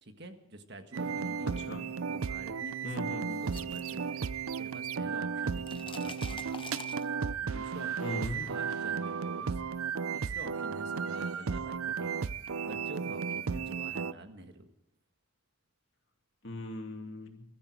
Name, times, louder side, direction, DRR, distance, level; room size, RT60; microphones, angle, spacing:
voice 1, 0.0-1.7 2.1-4.3 4.6-6.8 7.4-9.6 10.1-12.3 12.6-14.7, right 1 dB, 50° right, 6 dB, 1.6 m, -48 dB
sound 1, 0.9-14.1, right 6 dB, 75° right, 0.6 m, -34 dB
voice 2, 2.8-3.4 8.0-8.5 16.4-17.4, left 1 dB, 55° left, 3 dB, 2.7 m, -39 dB
sound 2, 3.1-4.8 5.0-7.5, left 6 dB, 25° left, 0.7 m, -48 dB
22.0 x 13.5 x 4.8 m, 0.82 s
head